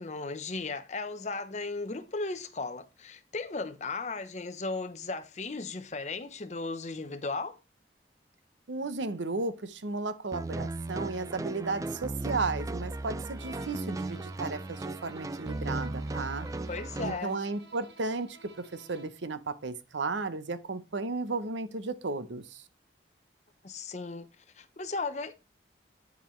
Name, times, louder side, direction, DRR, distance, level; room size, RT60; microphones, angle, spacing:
voice 1, 0.0-7.6 16.7-17.4 23.6-24.3 24.5-25.4, left 3 dB, 40° left, 0.8 m, -36 dB
voice 2, 8.7-16.5 17.0-22.6, right 3 dB, 85° right, 0.9 m, -34 dB
sound 1, 10.3-17.2, right 2 dB, 20° right, 0.3 m, -36 dB
Bowed string instrument, 13.3-19.3, right 3 dB, 65° right, 1.4 m, -54 dB
9.3 x 7.2 x 3.2 m
head